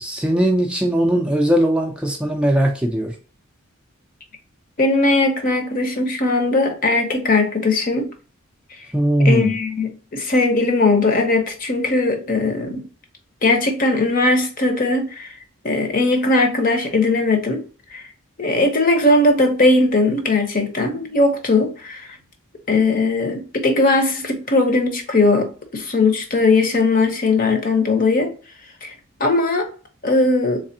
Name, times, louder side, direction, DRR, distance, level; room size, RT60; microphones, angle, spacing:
voice 1, 0.0-3.2 8.9-9.5, right 1 dB, 5° right, 0.4 m, -19 dB
voice 2, 4.8-8.1 9.2-12.8 13.4-15.3 15.6-17.6 17.9-18.0 18.4-22.0 22.7-28.3 28.8-28.9 29.2-29.7 30.0-30.6, left 2 dB, 45° left, 0.7 m, -19 dB
3.3 x 3.3 x 2.7 m
head